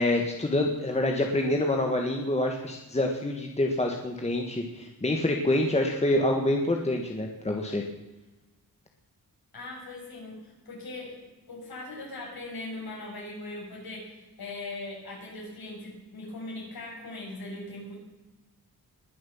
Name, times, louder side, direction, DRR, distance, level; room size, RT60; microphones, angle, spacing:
voice 1, 0.0-7.8, left 1 dB, 15° left, 2 dB, 1.5 m, -26 dB
voice 2, 9.5-18.0, left 2 dB, 75° left, -2 dB, 6.8 m, -40 dB
21.0 x 7.8 x 7.1 m, 1.1 s
wide cardioid pair, 130°, 37 cm